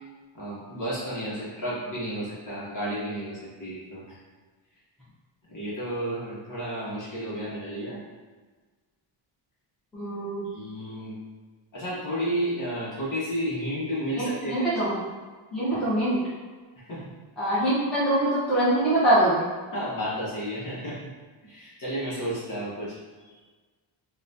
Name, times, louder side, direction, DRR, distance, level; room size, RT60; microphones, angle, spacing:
voice 1, 0.3-4.2 5.5-8.0 10.5-11.1 11.7-14.7 15.7-15.9 16.8-17.1 19.7-21.0 21.4-23.0, equal, 40° left, -8 dB, 1.1 m, -32 dB
voice 2, 9.9-10.5 14.2-15.0 15.5-16.2 17.4-19.5, right 1 dB, ahead, -12 dB, 0.7 m, -24 dB
3.9 x 2.2 x 2.6 m, 1.4 s
cardioid pair, 170°, 49 cm